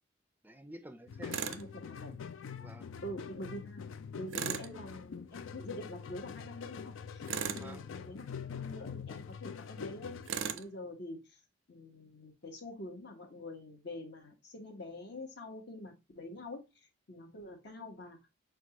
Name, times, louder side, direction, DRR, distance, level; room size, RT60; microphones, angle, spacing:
voice 1, 0.4-1.6 2.6-2.9 4.6-4.9 7.6-7.9, right 1 dB, 10° right, 0.4 m, -50 dB
sound 1, 1.1-10.3, left 6 dB, 90° left, 0.4 m, -44 dB
Tools, 1.3-1.6 4.3-4.7 7.3-7.7 10.3-10.7, right 8 dB, 85° right, 0.4 m, -36 dB
voice 2, 1.4-2.2 3.0-3.8 4.2-11.4 11.7-18.2, left 1 dB, 60° left, 1.2 m, -46 dB
6.0 x 2.3 x 2.9 m
head